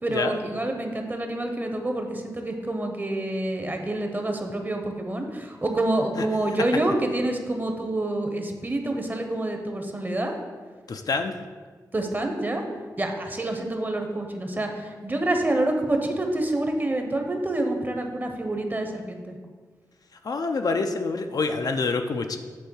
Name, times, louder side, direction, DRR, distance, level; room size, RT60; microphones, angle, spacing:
voice 1, 0.0-10.3 11.9-12.6 13.0-19.4, right 1 dB, 25° right, 4 dB, 1.0 m, -27 dB
voice 2, 10.9-11.4 20.2-22.4, left 4 dB, 65° left, 6 dB, 0.5 m, -26 dB
8.3 x 3.4 x 6.4 m, 1.5 s
wide cardioid pair, 95°, 7 cm